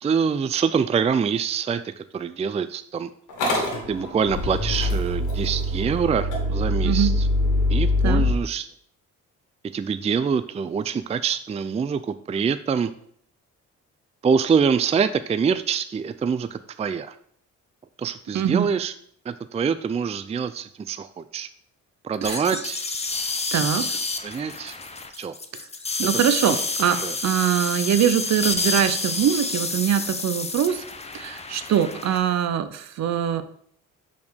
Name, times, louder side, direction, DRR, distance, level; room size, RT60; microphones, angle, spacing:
voice 1, 0.0-3.1 3.9-7.1 7.7-8.7 9.7-12.9 14.2-17.2 18.0-18.9 19.3-21.5 22.0-22.9 23.8-23.9 24.2-24.8 25.2-25.3 27.0-27.2, right 6 dB, 20° right, 12 dB, 0.4 m, -25 dB
Motor vehicle (road) / Engine starting, 3.3-8.3, left 1 dB, 90° left, 2.2 m, -23 dB
voice 2, 6.8-7.1 8.0-8.2 18.3-18.7 22.2-22.4 23.5-24.0 25.5-25.7 26.0-30.8 31.1-33.4, right 9 dB, 60° right, 11 dB, 0.8 m, -23 dB
sound 1, 22.2-32.2, left 3 dB, 20° left, 0.9 m, -29 dB
5.9 x 4.3 x 6.3 m, 0.64 s
cardioid pair, 90°, 30 cm